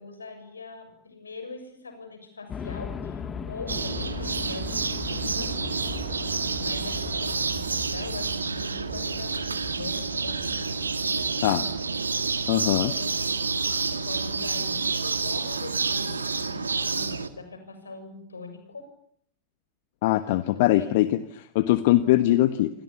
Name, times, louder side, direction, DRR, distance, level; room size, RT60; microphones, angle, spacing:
voice 1, 0.0-5.6 6.6-11.7 12.7-13.4 13.9-18.9 20.5-21.1, left 3 dB, 75° left, 9 dB, 6.8 m, -42 dB
sound 1, 2.5-14.1, left 6 dB, 25° left, 2.4 m, -39 dB
sound 2, 3.7-17.3, right 4 dB, 75° right, 2.0 m, -29 dB
voice 2, 12.5-12.9 20.0-22.7, left 15 dB, 50° left, 12 dB, 1.3 m, -22 dB
28.5 x 26.0 x 7.3 m, 0.67 s
figure-of-eight pair, 90°, 0 cm